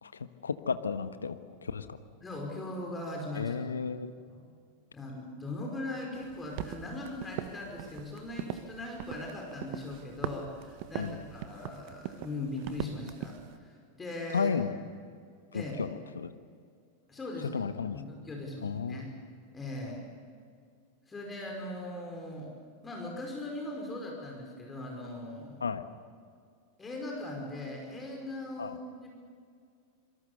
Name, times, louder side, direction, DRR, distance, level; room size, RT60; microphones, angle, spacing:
voice 1, 0.0-2.0 3.3-4.1 11.0-11.2 14.3-14.7 15.5-16.3 17.5-18.0 18.6-19.0 25.6-25.8 28.6-28.8, left 5 dB, 75° left, 10 dB, 1.4 m, -33 dB
voice 2, 2.2-3.6 4.3-4.5 4.9-14.5 15.5-15.7 17.1-17.6 17.9-19.1 19.5-20.0 21.1-22.5 22.8-25.6 26.8-29.1, left 2 dB, 15° left, -1 dB, 5.3 m, -40 dB
sound 1, 6.1-13.6, right 11 dB, 45° right, 1.4 m, -41 dB
26.5 x 24.0 x 6.9 m, 2.2 s
figure-of-eight pair, 90°, 0 cm